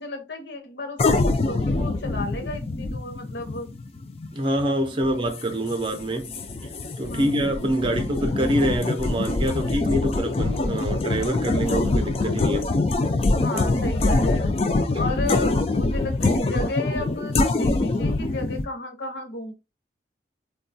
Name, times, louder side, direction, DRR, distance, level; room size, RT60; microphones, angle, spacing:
voice 1, 0.0-3.7 5.0-5.1 7.1-7.4 13.4-14.6 15.0-19.5, left 2 dB, 75° left, 0.8 m, -33 dB
sound 1, 1.0-18.7, left 2 dB, 35° left, 0.3 m, -24 dB
voice 2, 4.3-6.3 7.0-12.7, right 1 dB, 30° right, 0.5 m, -25 dB
3.7 x 2.3 x 2.6 m
head